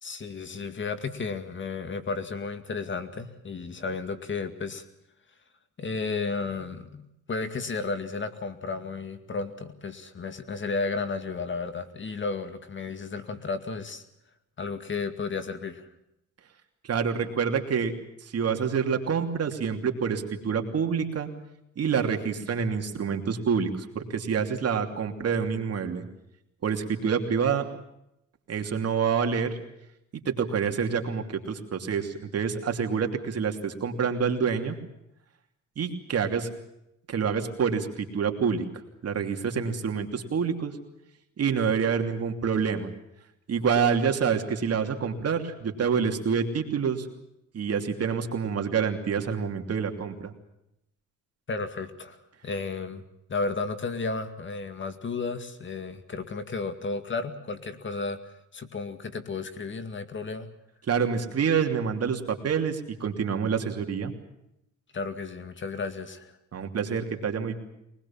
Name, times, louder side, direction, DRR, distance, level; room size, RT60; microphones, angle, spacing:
voice 1, 0.0-4.9 5.8-14.0 14.6-15.9 51.5-53.0 53.3-60.5 64.9-66.3, left 4 dB, 40° left, 10 dB, 2.2 m, -33 dB
voice 2, 16.8-17.9 18.2-21.3 21.8-26.0 26.6-27.6 28.5-29.6 30.2-34.8 35.8-36.5 37.1-38.6 39.0-40.7 41.4-42.9 43.5-47.1 47.5-50.3 60.9-64.1 66.5-67.6, right 6 dB, 55° right, 4 dB, 3.0 m, -27 dB
23.0 x 20.5 x 7.3 m, 0.82 s
cardioid pair, 90°, 30 cm